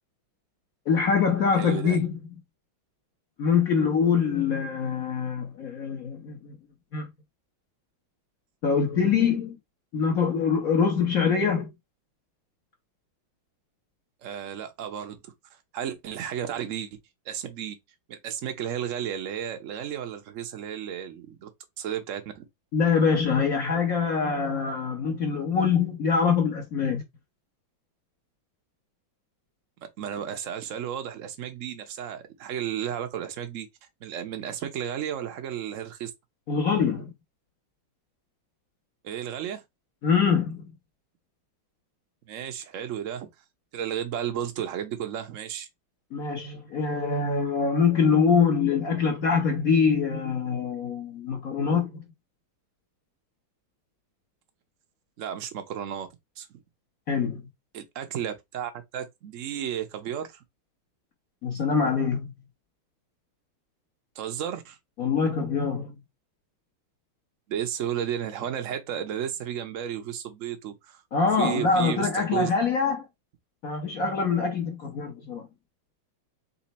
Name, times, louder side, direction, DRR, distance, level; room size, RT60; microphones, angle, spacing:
voice 1, 0.9-2.2 3.4-6.5 6.9-7.1 8.6-9.6 9.9-11.7 22.7-27.0 36.5-37.1 40.0-40.6 46.1-52.0 57.1-57.4 61.4-62.3 65.0-66.0 71.1-73.0 73.6-75.5, left 5 dB, 55° left, 1.2 m, -24 dB
voice 2, 1.5-2.0 14.2-15.3 15.7-17.0 17.3-17.8 18.1-21.5 21.8-22.5 29.8-33.7 34.0-36.1 39.0-39.6 42.3-43.3 43.7-45.7 55.2-56.1 56.4-56.5 57.7-60.4 64.2-64.8 67.5-71.0 71.4-72.5, right 9 dB, 55° right, 0.9 m, -33 dB
4.3 x 2.5 x 4.1 m
omnidirectional pair, 2.2 m